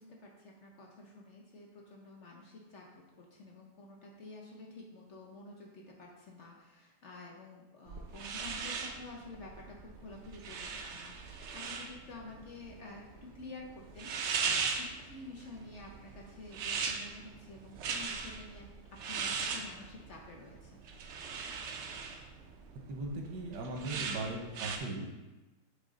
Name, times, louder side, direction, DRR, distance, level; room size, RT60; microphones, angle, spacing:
voice 1, 0.0-20.8, left 2 dB, 55° left, -1 dB, 0.8 m, -50 dB
sound 1, 7.9-24.8, right 5 dB, 70° right, 0.7 m, -39 dB
voice 2, 22.9-25.1, right 2 dB, 85° right, 2 dB, 1.5 m, -38 dB
7.5 x 3.3 x 3.8 m, 1.1 s
omnidirectional pair, 1.8 m